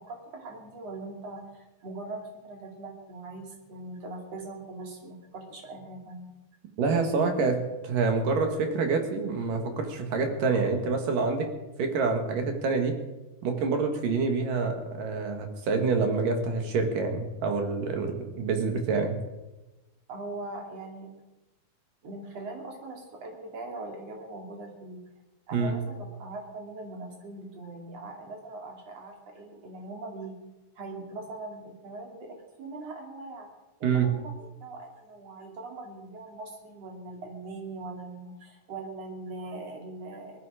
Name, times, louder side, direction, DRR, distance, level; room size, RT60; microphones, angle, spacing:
voice 1, 0.0-6.3 20.1-21.1 22.0-25.0 25.5-30.4 30.8-33.5 33.8-40.4, right 2 dB, 45° right, 1 dB, 3.7 m, -41 dB
voice 2, 6.8-11.5 11.8-12.9 13.4-19.2 25.5-25.7 33.8-34.1, right 4 dB, 65° right, 4 dB, 3.4 m, -27 dB
19.0 x 13.5 x 5.0 m, 1.0 s
omnidirectional pair, 4.3 m